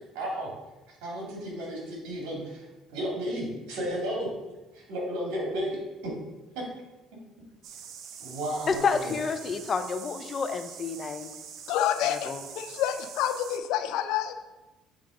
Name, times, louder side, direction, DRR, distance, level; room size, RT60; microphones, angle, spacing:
voice 1, 0.1-0.5 1.0-4.3 4.7-5.8 6.0-6.1 6.6-6.7 8.2-9.1, right 1 dB, 85° right, -2 dB, 2.2 m, -33 dB
sound 1, 7.6-13.6, right 7 dB, 65° right, 0.6 m, -44 dB
voice 2, 8.7-11.3 12.1-12.4, left 5 dB, 40° left, 9 dB, 0.6 m, -29 dB
voice 3, 11.7-14.3, left 10 dB, 80° left, 9 dB, 0.5 m, -28 dB
7.5 x 3.5 x 4.9 m, 1.1 s
cardioid pair, 95°, 0 cm